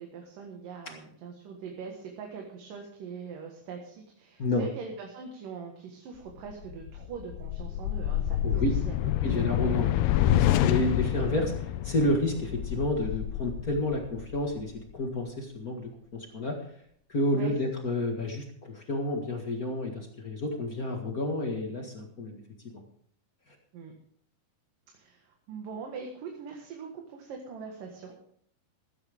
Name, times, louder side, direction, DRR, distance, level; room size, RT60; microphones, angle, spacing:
voice 1, 0.0-9.3 10.8-10.9 17.3-17.5 17.9-18.0 23.7-23.9 24.9-28.2, right 5 dB, 65° right, 1 dB, 3.1 m, -42 dB
sound 1, 6.5-14.9, left 12 dB, 85° left, 2.7 m, -28 dB
voice 2, 8.4-8.7 9.2-16.6 17.1-22.4 22.7-22.8, left 1 dB, 45° left, 2 dB, 1.1 m, -30 dB
15.0 x 14.5 x 3.6 m, 0.63 s
omnidirectional pair, 4.5 m